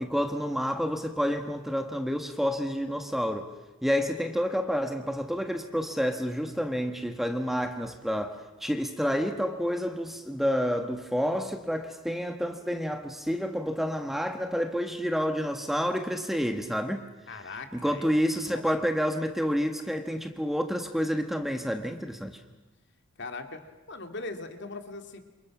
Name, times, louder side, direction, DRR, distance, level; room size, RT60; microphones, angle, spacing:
voice 1, 0.0-3.5 3.8-17.0 17.7-22.4, equal, ahead, 6 dB, 1.3 m, -29 dB
voice 2, 17.3-18.1 18.4-18.9 22.5-22.6 23.2-23.6 23.9-25.2, left 3 dB, 55° left, 6 dB, 2.4 m, -40 dB
28.5 x 28.0 x 6.1 m, 1.1 s
head